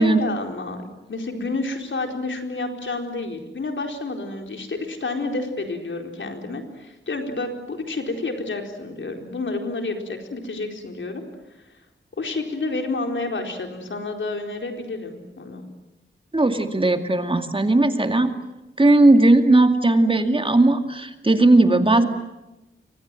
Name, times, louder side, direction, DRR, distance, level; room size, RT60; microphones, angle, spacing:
voice 1, 0.0-11.2 12.2-15.7, left 3 dB, 75° left, 4 dB, 4.4 m, -29 dB
voice 2, 16.3-18.3 18.8-22.1, right 2 dB, 25° right, 6 dB, 2.4 m, -17 dB
29.0 x 24.5 x 7.7 m, 1.0 s
wide cardioid pair, 95°, 20 cm